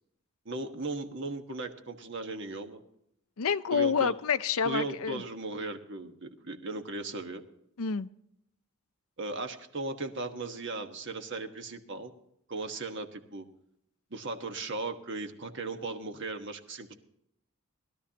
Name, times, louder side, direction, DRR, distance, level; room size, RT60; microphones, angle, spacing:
voice 1, 0.4-2.8 3.7-4.1 4.6-7.4 9.2-12.1 12.5-13.5 14.1-16.9, right 3 dB, 55° right, 6 dB, 1.4 m, -37 dB
voice 2, 3.4-5.2 7.8-8.1, left 6 dB, 80° left, 13 dB, 0.6 m, -28 dB
20.5 x 13.0 x 2.9 m, 0.75 s
head